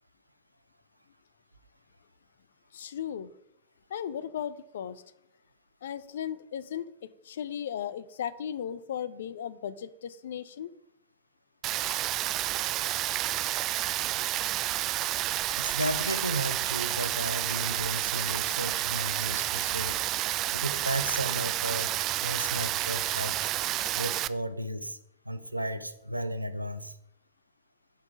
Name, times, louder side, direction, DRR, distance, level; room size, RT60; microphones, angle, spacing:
voice 1, 2.7-3.3 3.9-5.0 5.8-6.9 7.2-10.7, left 9 dB, 60° left, 16 dB, 0.6 m, -36 dB
Rain, 11.6-24.3, right 14 dB, 35° right, 0.4 m, -30 dB
voice 2, 15.6-20.0 20.5-21.9 22.2-23.5 24.0-25.0 25.3-27.0, right 1 dB, 85° right, 13 dB, 0.7 m, -34 dB
13.0 x 6.1 x 5.1 m, 0.78 s
figure-of-eight pair, 90°, 0 cm